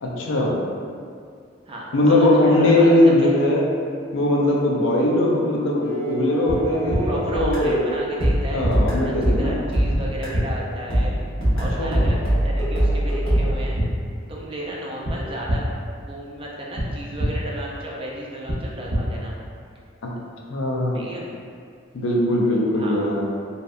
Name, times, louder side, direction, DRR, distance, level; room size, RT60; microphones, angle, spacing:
voice 1, 0.0-0.6 1.9-3.6 4.1-7.9 8.5-9.6 11.8-12.1 20.5-21.1 21.9-23.3, left 1 dB, 70° left, -2 dB, 0.4 m, -20 dB
voice 2, 1.7-3.4 7.0-8.6 9.3-11.1 11.6-12.2 12.4-13.8 14.3-15.7 16.0-19.4 20.9-21.3 22.7-23.0, right 1 dB, 30° right, -3 dB, 0.3 m, -33 dB
sound 1, 5.8-10.8, right 2 dB, 10° left, 0.7 m, -34 dB
sound 2, 6.5-6.6 6.9-7.0 8.2-8.3 8.6-8.7 9.9-10.0 10.3-10.4 11.6-11.7 12.0-12.1 13.3-13.4 13.7-13.8 15.0-15.1 15.5-15.6 16.7-16.8 17.2-17.3 18.5-18.6 18.9-19.0, right 1 dB, 75° right, 0.6 m, -23 dB
sound 3, 7.3-10.5 10.9-13.6, equal, 90° left, 1.0 m, -22 dB
2.6 x 2.1 x 2.4 m, 2.3 s
head